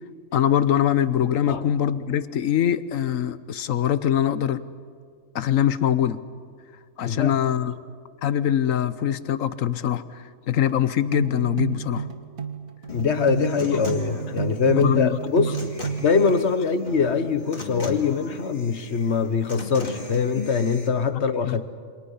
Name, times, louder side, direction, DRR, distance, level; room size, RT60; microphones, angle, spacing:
voice 1, 0.3-4.6 5.3-6.2 7.0-7.8 8.2-12.1 14.8-15.2 21.1-21.6, left 10 dB, 75° left, 14 dB, 1.3 m, -23 dB
voice 2, 7.0-7.4 12.9-15.6 16.0-21.7, left 5 dB, 55° left, 11 dB, 1.4 m, -23 dB
sound 1, 10.7-16.3, right 7 dB, 80° right, 1.7 m, -31 dB
Human voice / Acoustic guitar, 12.9-20.9, left 4 dB, 40° left, 2.6 m, -37 dB
28.5 x 25.0 x 5.7 m, 2.1 s
omnidirectional pair, 1.4 m